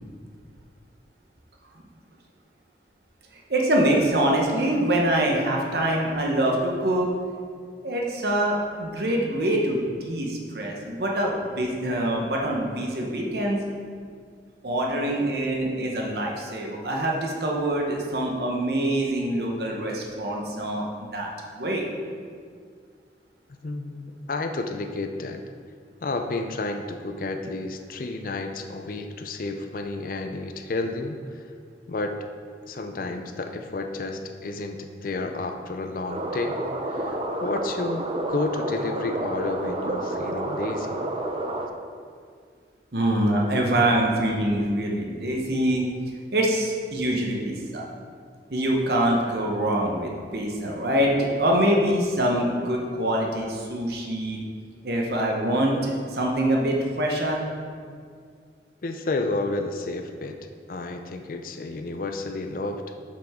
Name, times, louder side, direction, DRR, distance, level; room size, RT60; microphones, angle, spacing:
voice 1, 3.5-7.1 7.8-13.6 14.6-20.9 21.1-21.9 42.9-45.9 46.3-47.9 48.5-54.4 54.8-57.4, right 1 dB, 60° right, -1 dB, 1.0 m, -24 dB
voice 2, 23.5-25.4 26.0-31.4 31.9-32.2 32.6-36.6 36.9-41.0 58.8-60.4 60.7-62.8, left 2 dB, 50° left, 6 dB, 0.5 m, -31 dB
sound 1, 36.1-41.7, right 1 dB, 30° right, 0.5 m, -30 dB
7.3 x 6.1 x 3.6 m, 2.1 s
head